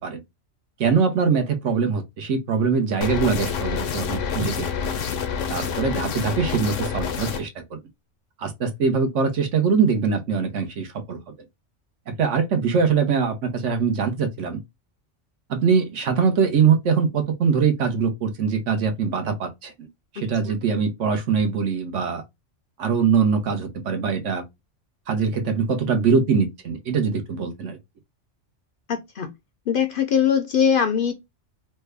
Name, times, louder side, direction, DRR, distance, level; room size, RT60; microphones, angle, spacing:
voice 1, 0.8-4.9 5.5-7.8 8.4-11.2 12.1-14.6 15.5-19.9 20.1-22.2 22.8-24.4 25.1-27.8, right 5 dB, 80° right, 1.1 m, -22 dB
sound 1, 3.0-7.4, left 6 dB, 85° left, 1.0 m, -27 dB
voice 2, 20.2-20.5 28.9-29.3 29.7-31.1, left 7 dB, 60° left, 0.6 m, -22 dB
3.3 x 2.1 x 3.3 m
omnidirectional pair, 1.3 m